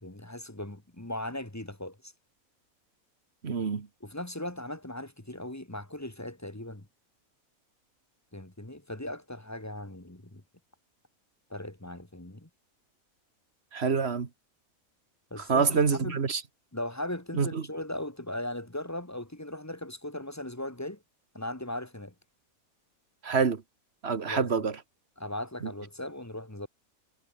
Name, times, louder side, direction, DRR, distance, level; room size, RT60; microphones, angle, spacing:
voice 1, 0.0-2.1 4.0-6.9 8.3-10.4 11.5-12.5 15.3-16.2 16.7-21.0 21.3-22.1 24.3-24.5 25.2-26.7, left 1 dB, 10° left, 1.9 m, -38 dB
voice 2, 3.4-3.9 13.7-14.3 15.4-16.4 17.3-17.6 23.2-23.6 24.0-24.8, right 5 dB, 50° right, 1.8 m, -26 dB
omnidirectional pair, 1.5 m